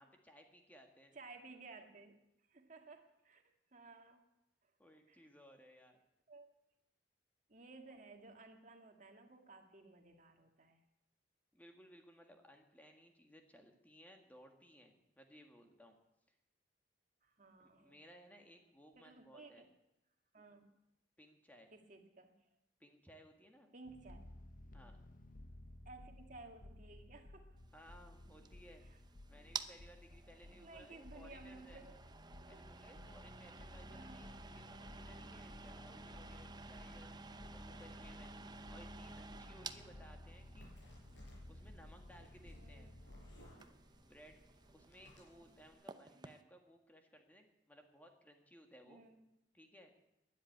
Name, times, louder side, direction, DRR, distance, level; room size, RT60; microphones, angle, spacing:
voice 1, 0.0-1.2 3.8-3.9 4.8-6.0 11.5-16.0 17.6-19.7 21.2-21.7 22.8-23.7 24.7-25.0 27.7-28.8 29.3-31.8 32.5-37.1 37.5-38.3 38.7-40.7 41.5-43.0 44.0-44.4 44.7-49.0 49.5-49.9, equal, 10° left, 3 dB, 1.8 m, -61 dB
voice 2, 1.1-2.2 2.5-4.3 5.1-5.2 6.3-6.5 7.5-10.8 17.2-18.0 19.0-19.7 20.3-20.8 21.7-22.4 23.7-24.2 25.9-27.6 28.9-29.0 30.6-32.0 32.4-32.6 33.9-34.3 42.5-42.9 45.4-45.5 46.2-46.4 48.8-49.4, right 3 dB, 45° right, 5 dB, 1.9 m, -57 dB
sound 1, 23.8-43.6, left 1 dB, 50° left, 1.1 m, -56 dB
sound 2, 27.7-46.4, right 4 dB, 25° right, 0.7 m, -53 dB
sound 3, 40.3-45.7, equal, 90° left, 5.8 m, -63 dB
13.0 x 10.5 x 9.5 m, 0.89 s
head